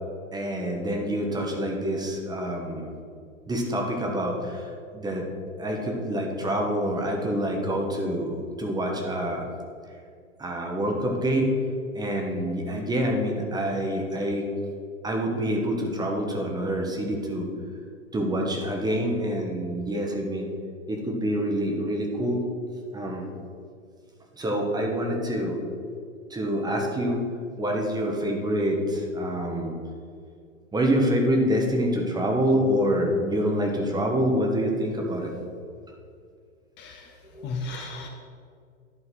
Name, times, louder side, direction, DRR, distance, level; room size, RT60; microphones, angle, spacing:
voice 1, 0.3-2.9 3.5-4.7 4.9-5.2 5.6-9.5 10.4-11.5 11.9-14.5 15.0-17.5 18.1-20.5 20.9-22.4 22.9-23.3 24.4-25.6 26.3-27.2 27.6-29.7 30.7-35.3 37.3-37.5, equal, 10° right, 1 dB, 1.1 m, -26 dB
voice 2, 36.8-37.1 37.4-38.1, left 3 dB, 30° left, 2 dB, 0.8 m, -34 dB
11.0 x 4.0 x 6.0 m, 2.2 s
hypercardioid pair, 110°, 39 cm